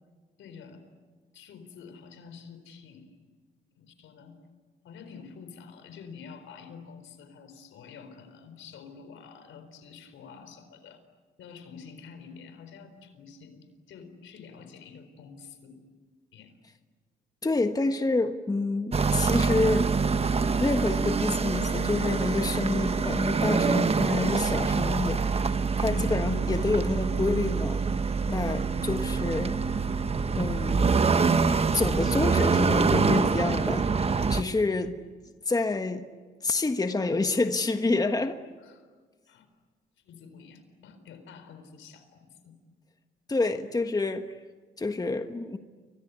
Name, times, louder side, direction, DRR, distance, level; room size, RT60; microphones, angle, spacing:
voice 1, 0.4-0.8 1.3-3.2 3.7-4.4 4.8-11.0 11.4-15.8 16.3-16.6 38.6-38.9 39.3-39.5 40.0-42.6, left 6 dB, 80° left, 9 dB, 4.3 m, -48 dB
voice 2, 17.4-19.9 20.6-25.2 25.8-27.8 28.3-29.6 30.4-31.0 31.7-33.9 34.3-35.0 35.5-36.0 36.4-38.4 43.3-44.3 44.8-45.6, left 3 dB, 20° left, 7 dB, 1.5 m, -28 dB
sound 1, 18.9-34.4, right 5 dB, 30° right, 1.2 m, -25 dB
29.5 x 24.0 x 8.4 m, 1.4 s
cardioid pair, 90°, 20 cm